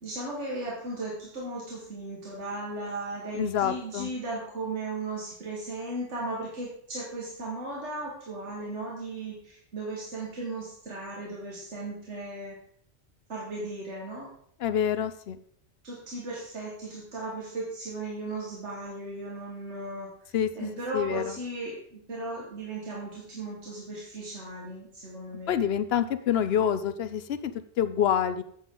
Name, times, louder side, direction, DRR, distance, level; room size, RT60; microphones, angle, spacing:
voice 1, 0.0-12.6 13.3-14.3 15.8-20.1 20.5-25.6, right 2 dB, 80° right, -3 dB, 2.0 m, -36 dB
voice 2, 3.3-4.1 14.6-15.4 20.3-20.7 20.9-21.3 25.5-27.5 27.8-28.4, left 9 dB, 65° left, 12 dB, 0.8 m, -27 dB
9.4 x 7.9 x 3.8 m, 0.65 s
omnidirectional pair, 1.2 m